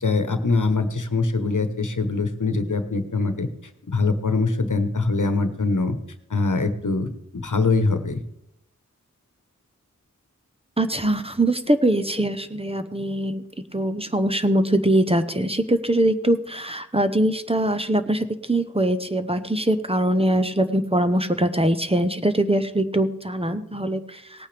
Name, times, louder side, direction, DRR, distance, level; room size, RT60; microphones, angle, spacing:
voice 1, 0.0-3.5 3.9-5.9 6.3-7.1 7.3-8.2, left 3 dB, 70° left, 9 dB, 1.1 m, -23 dB
voice 2, 10.8-13.4 13.7-24.2, right 1 dB, 20° right, 9 dB, 0.8 m, -22 dB
18.5 x 8.9 x 3.4 m, 0.77 s
wide cardioid pair, 40°, 31 cm